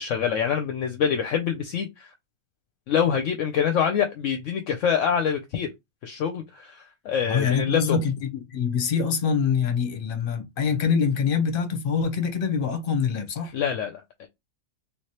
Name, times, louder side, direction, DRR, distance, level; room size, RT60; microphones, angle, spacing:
voice 1, 0.0-2.1 2.9-5.7 6.0-8.0 13.5-14.3, left 7 dB, 70° left, 0.9 m, -25 dB
voice 2, 7.3-13.5, left 6 dB, 45° left, 0.9 m, -25 dB
3.3 x 3.2 x 2.8 m
omnidirectional pair, 1.5 m